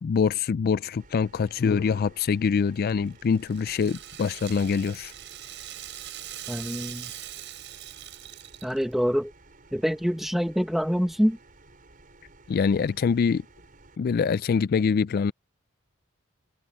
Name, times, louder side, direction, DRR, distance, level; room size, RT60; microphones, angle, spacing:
voice 1, 0.0-5.1 12.5-13.4 14.0-15.3, left 5 dB, 45° left, 0.3 m, -24 dB
sound 1, 1.0-14.0, right 2 dB, 45° right, 6.6 m, -54 dB
Rattle (instrument), 2.7-9.0, right 12 dB, 60° right, 6.5 m, -42 dB
voice 2, 6.5-7.1 8.6-9.3 9.7-11.4, equal, ahead, 1.2 m, -25 dB
head